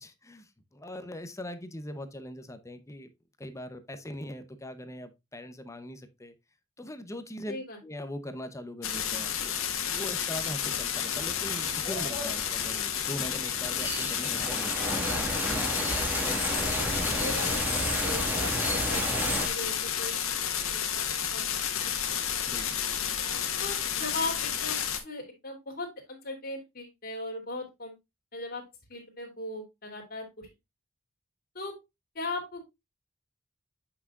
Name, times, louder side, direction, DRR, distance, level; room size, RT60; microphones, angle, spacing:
voice 1, 0.0-3.1 3.4-6.3 6.8-7.6 7.8-9.5 9.9-15.2 15.5-16.8 22.5-22.8, left 1 dB, 15° left, 0.8 m, -41 dB
voice 2, 7.5-7.8 16.8-20.1 20.7-21.1 21.3-21.4 23.6-27.9 28.3-28.6 28.9-30.5 31.5-31.7 32.1-32.7, left 2 dB, 45° left, 2.8 m, -38 dB
sound 1, 8.8-25.0, left 8 dB, 75° left, 1.5 m, -31 dB
sound 2, 11.0-19.5, equal, 10° right, 1.8 m, -32 dB
8.4 x 5.9 x 2.4 m
head